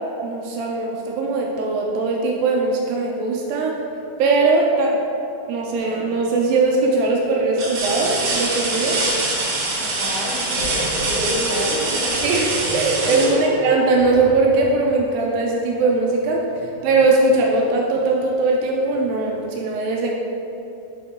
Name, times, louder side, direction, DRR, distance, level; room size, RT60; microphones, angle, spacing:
voice 1, 0.2-3.7 4.2-5.0 5.5-9.0 12.2-16.4 16.8-20.1, right 3 dB, 80° right, -2 dB, 2.2 m, -20 dB
sound 1, 5.8-6.3 6.8-6.9 7.5-14.2 16.0-16.1 16.6-17.6 18.9-19.0, right 2 dB, 65° right, 2.4 m, -25 dB
voice 2, 9.8-12.2 13.1-13.5, left 1 dB, 80° left, -6 dB, 1.9 m, -32 dB
sound 2, 10.6-15.0, equal, 55° left, 1.3 m, -28 dB
7.0 x 4.5 x 3.6 m, 2.9 s
omnidirectional pair, 4.4 m